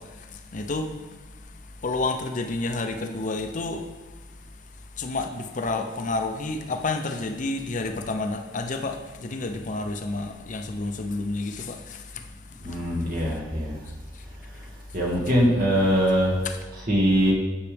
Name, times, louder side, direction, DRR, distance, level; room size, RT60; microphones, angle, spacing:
voice 1, 0.0-13.4 13.9-14.3 16.4-16.6, left 3 dB, 45° left, 6 dB, 0.6 m, -31 dB
voice 2, 12.6-13.8 14.9-16.4 16.7-17.3, equal, 50° right, -4 dB, 2.0 m, -22 dB
9.8 x 7.1 x 3.4 m, 1.3 s
head